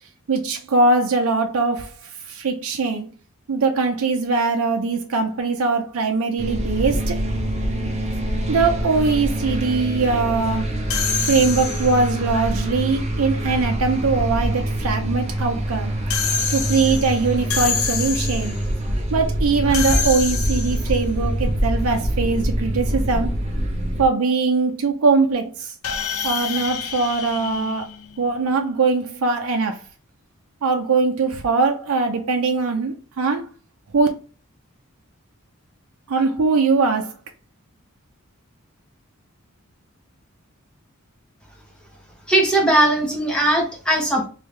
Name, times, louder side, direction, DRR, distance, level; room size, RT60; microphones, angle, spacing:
voice 1, 0.3-3.1 3.5-7.2 8.5-10.7 11.3-15.9 16.5-18.5 19.1-23.3 24.0-25.7 26.2-27.9 28.2-29.8 30.6-33.5 33.9-34.1 36.1-37.1, right 4 dB, 90° right, 0.5 m, -21 dB
sound 1, 6.4-24.1, right 1 dB, 30° right, 0.7 m, -25 dB
sound 2, 10.9-12.2 16.1-18.6 19.7-21.0 25.8-28.4, left 6 dB, 85° left, 0.6 m, -27 dB
voice 2, 42.3-44.3, right 1 dB, 5° left, 1.0 m, -19 dB
3.3 x 2.6 x 3.1 m
head